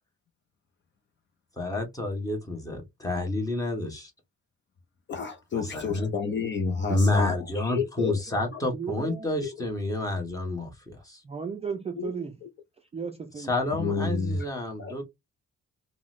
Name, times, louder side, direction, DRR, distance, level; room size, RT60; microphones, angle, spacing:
voice 1, 1.6-4.1 5.5-6.1 6.9-11.2 13.4-15.0, left 2 dB, 10° left, 1.0 m, -29 dB
voice 2, 5.1-8.2 8.5-8.6 12.0-12.1 13.8-14.5 14.8-14.9, left 5 dB, 40° left, 0.5 m, -30 dB
voice 3, 8.7-9.3 11.2-12.4 12.9-13.5, right 6 dB, 25° right, 0.3 m, -34 dB
3.7 x 2.1 x 2.4 m
cardioid pair, 145°, 29 cm